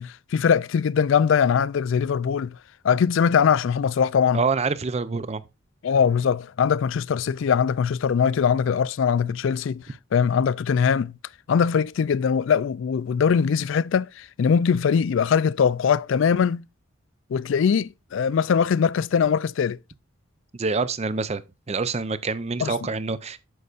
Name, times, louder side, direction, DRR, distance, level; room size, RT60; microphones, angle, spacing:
voice 1, 0.0-2.6 2.8-4.4 5.8-9.8 10.1-11.2 11.5-16.6 17.3-19.8 22.6-22.7, left 7 dB, 65° left, 0.3 m, -21 dB
voice 2, 4.3-5.4 20.5-21.4 21.7-23.4, right 4 dB, 30° right, 0.5 m, -26 dB
9.4 x 6.7 x 2.5 m
head